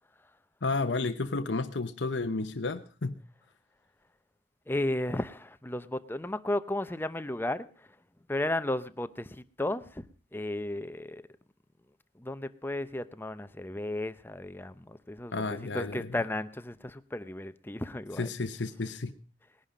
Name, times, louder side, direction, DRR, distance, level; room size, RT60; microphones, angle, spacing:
voice 1, 0.6-3.1 15.3-16.1 18.2-19.1, left 3 dB, 90° left, 0.9 m, -32 dB
voice 2, 4.7-7.9 8.3-11.2 12.1-18.3, left 1 dB, 10° left, 0.7 m, -34 dB
20.0 x 11.0 x 5.0 m
head